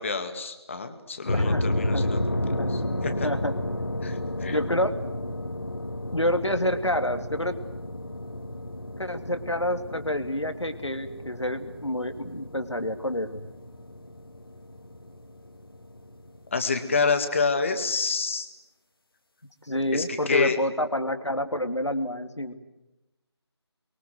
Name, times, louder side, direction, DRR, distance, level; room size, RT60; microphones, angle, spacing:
voice 1, 0.0-2.4 2.7-3.3 4.0-4.6 16.5-18.5 19.9-20.6, left 4 dB, 25° left, 8 dB, 2.1 m, -28 dB
voice 2, 1.3-1.6 1.9-2.1 2.6-2.7 3.2-3.5 4.5-4.9 6.1-7.5 9.0-13.5 19.6-22.5, left 1 dB, 85° left, 8 dB, 2.7 m, -28 dB
sound 1, 1.3-16.5, left 1 dB, 55° left, 3.1 m, -32 dB
29.0 x 23.0 x 7.9 m, 0.96 s
figure-of-eight pair, 160°, 15 cm